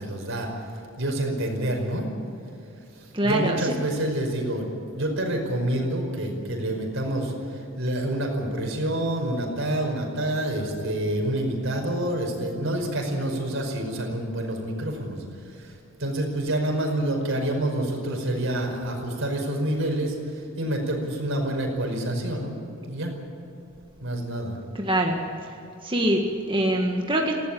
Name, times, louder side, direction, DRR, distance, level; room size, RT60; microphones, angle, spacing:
voice 1, 0.0-2.1 2.9-22.6 22.8-23.1 24.0-24.6, right 1 dB, 60° right, 2 dB, 5.3 m, -28 dB
voice 2, 3.1-3.6 24.8-25.2 25.8-27.3, right 1 dB, 25° right, 1 dB, 1.8 m, -23 dB
20.0 x 17.0 x 8.6 m, 2.7 s
head